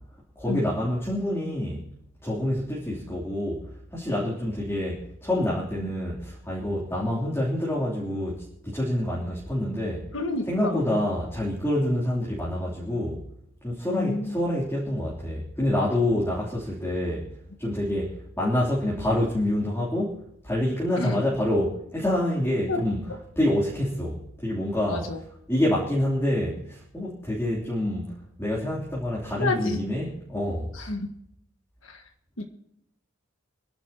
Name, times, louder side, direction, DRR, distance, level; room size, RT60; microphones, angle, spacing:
voice 1, 0.4-1.9 2.2-10.1 10.5-13.2 13.6-17.3 17.6-23.0 23.4-25.1 25.5-28.1 28.4-30.7, left 1 dB, 10° left, 3.4 m, -27 dB
voice 2, 10.1-11.0 13.9-14.4 21.0-21.2 22.7-22.8 24.9-25.2 29.4-29.8 30.7-31.1 31.8-32.0 32.4-32.5, left 2 dB, 65° left, 1.7 m, -29 dB
28.5 x 11.5 x 3.0 m
head